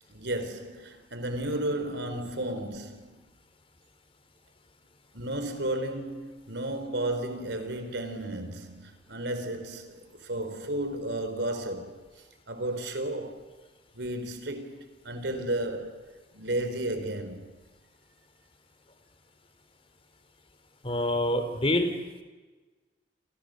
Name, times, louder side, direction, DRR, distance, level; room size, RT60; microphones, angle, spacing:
voice 1, 0.1-3.2 5.1-12.0 12.5-13.5 14.0-16.1 16.3-17.5, right 1 dB, 75° right, 4.2 m, -33 dB
voice 2, 20.8-22.2, left 1 dB, 35° left, 3.4 m, -27 dB
29.5 x 28.0 x 6.6 m
head